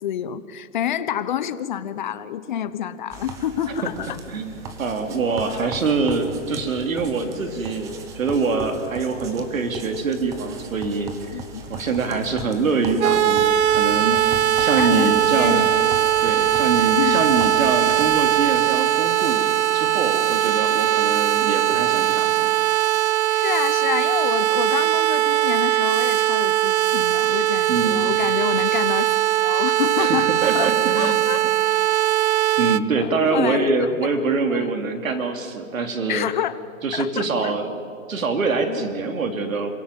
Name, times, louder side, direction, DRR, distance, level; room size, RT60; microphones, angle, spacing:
voice 1, 0.0-4.2 5.4-5.7 11.3-11.6 14.8-15.8 17.0-17.2 23.3-29.1 29.4-30.7 31.0-31.4 33.0-33.9 34.5-34.7 36.1-36.6 36.9-37.5 38.7-38.8, left 10 dB, 35° left, 13 dB, 1.0 m, -28 dB
sound 1, 3.1-18.1, right 3 dB, 10° right, 0.8 m, -38 dB
voice 2, 3.8-11.3 11.7-15.7 16.2-19.4 19.7-22.5 27.7-28.1 30.0-31.2 32.6-36.2 36.8-37.8 38.1-39.7, right 4 dB, 80° right, 6 dB, 3.1 m, -24 dB
sound 2, 13.0-32.8, right 12 dB, 55° right, 0.8 m, -20 dB
27.0 x 16.5 x 9.1 m, 2.3 s
hypercardioid pair, 160°, 40 cm